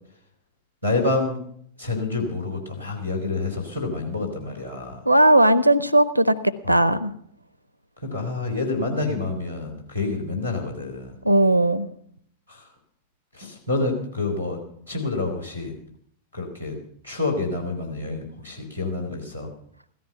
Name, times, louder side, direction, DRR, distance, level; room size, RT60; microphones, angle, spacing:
voice 1, 0.8-1.4 1.8-5.0 6.6-6.8 8.0-11.2 12.5-12.7 13.3-14.6 14.9-15.7 16.3-16.8 17.0-19.5, left 3 dB, 90° left, -1 dB, 3.5 m, -28 dB
voice 2, 5.1-7.1 11.2-11.9, right 1 dB, 90° right, 16 dB, 0.6 m, -18 dB
16.5 x 13.5 x 5.6 m, 0.65 s
figure-of-eight pair, 90°, 0 cm